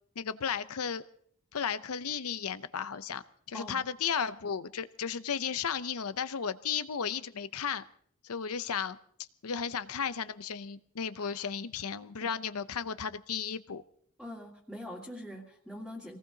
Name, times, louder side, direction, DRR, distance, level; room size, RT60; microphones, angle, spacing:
voice 1, 0.2-1.0 1.5-3.2 3.5-7.8 8.2-9.0 9.4-13.8, left 7 dB, 90° left, 13 dB, 0.7 m, -34 dB
voice 2, 14.2-16.2, left 1 dB, ahead, -6 dB, 2.1 m, -43 dB
26.0 x 19.0 x 2.8 m, 0.62 s
head